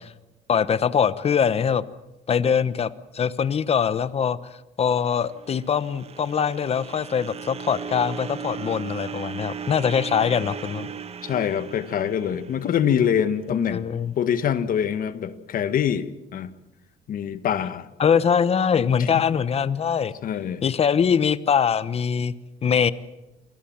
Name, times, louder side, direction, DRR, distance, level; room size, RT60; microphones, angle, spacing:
voice 1, 0.5-1.8 2.3-4.4 4.8-10.9 13.5-14.1 18.0-20.1 20.6-22.3 22.6-22.9, left 7 dB, 35° left, 1.1 m, -22 dB
sound 1, 5.1-13.3, right 7 dB, 35° right, 1.5 m, -37 dB
voice 2, 11.2-16.5 17.1-17.9 19.0-19.2 20.2-20.6, left 8 dB, 55° left, 1.6 m, -25 dB
27.5 x 21.0 x 7.4 m
cardioid pair, 110°, 17 cm